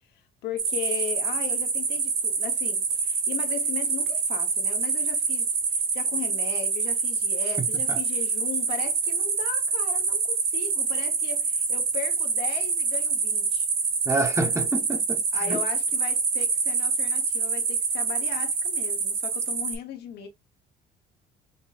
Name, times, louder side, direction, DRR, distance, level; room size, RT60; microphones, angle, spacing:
voice 1, 0.4-13.7 15.3-20.3, left 9 dB, 75° left, 1.0 m, -37 dB
sound 1, 0.6-19.8, right 5 dB, 60° right, 1.8 m, -26 dB
voice 2, 7.6-8.0 14.1-15.2 15.5-15.6, right 2 dB, 15° right, 0.9 m, -28 dB
5.8 x 2.7 x 2.4 m
cardioid pair, 110°, 17 cm